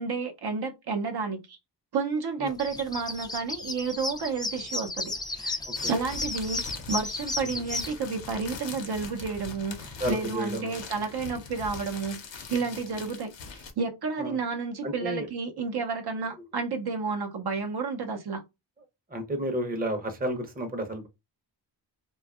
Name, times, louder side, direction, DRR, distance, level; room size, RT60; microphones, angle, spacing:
voice 1, 0.0-1.6 1.9-5.6 5.9-6.6 6.9-12.2 12.5-18.4, right 4 dB, 65° right, 0.6 m, -31 dB
sound 1, 2.5-7.9, left 2 dB, 10° left, 0.3 m, -33 dB
sound 2, 5.7-13.7, left 5 dB, 90° left, 0.7 m, -42 dB
voice 2, 10.0-10.7 12.5-12.6 14.2-14.4 14.8-15.3 19.1-21.1, right 1 dB, 20° right, 0.6 m, -31 dB
2.6 x 2.2 x 2.3 m
cardioid pair, 75°, 43 cm